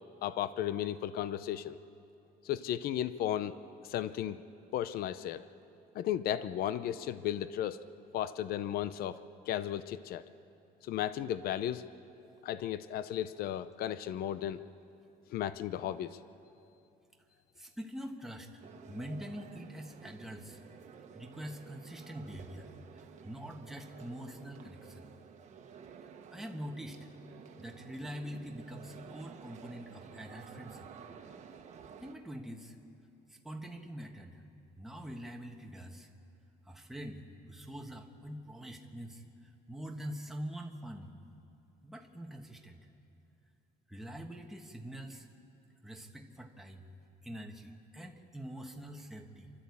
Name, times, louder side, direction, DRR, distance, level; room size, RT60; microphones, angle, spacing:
voice 1, 0.2-1.8 2.4-3.5 3.8-4.4 4.7-5.4 5.9-7.8 8.1-10.2 10.8-11.8 12.4-14.6 15.3-16.2, left 11 dB, 65° left, 14 dB, 0.6 m, -35 dB
voice 2, 17.6-18.5 18.9-20.6 21.1-25.1 26.3-27.0 27.6-30.9 32.0-32.8 33.3-34.4 34.8-36.1 36.7-39.2 39.7-41.1 41.8-42.8 43.9-45.3 45.8-46.9 47.2-49.5, equal, ahead, 2 dB, 1.2 m, -44 dB
sound 1, 18.6-32.1, right 6 dB, 45° right, 1.3 m, -52 dB
27.5 x 12.5 x 8.4 m, 2.7 s
cardioid pair, 175°, 17 cm